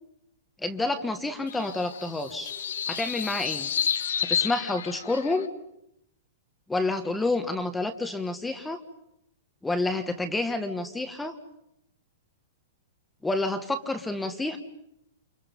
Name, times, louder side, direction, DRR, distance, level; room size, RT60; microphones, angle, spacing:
voice 1, 0.6-2.5 2.9-3.7 4.3-5.5 6.7-8.8 9.6-11.3 13.2-14.6, left 2 dB, 5° left, 8 dB, 1.4 m, -29 dB
sound 1, 1.5-5.5, left 8 dB, 80° left, 1.4 m, -31 dB
29.5 x 27.0 x 5.4 m, 0.80 s
hypercardioid pair, 165°, 0 cm